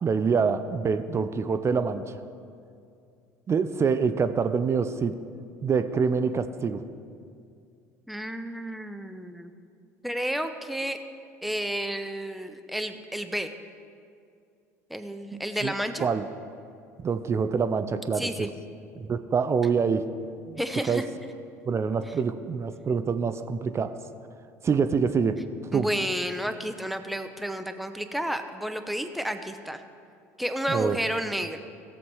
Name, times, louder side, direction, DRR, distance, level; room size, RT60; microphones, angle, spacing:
voice 1, 0.0-2.1 3.5-5.2 5.6-6.8 15.3-15.7 16.0-16.2 17.0-18.3 19.1-20.1 20.5-20.6 20.9-21.0 21.7-23.9 24.6-25.4 25.7-25.9 30.7-31.0, right 5 dB, 30° right, 11 dB, 0.6 m, -25 dB
voice 2, 8.1-9.5 10.0-11.0 11.4-13.5 14.9-16.1 18.1-18.6 20.6-21.3 25.7-29.8 30.4-31.6, equal, ahead, 8 dB, 0.9 m, -31 dB
16.5 x 7.4 x 4.8 m, 2.4 s
hypercardioid pair, 65°, 9 cm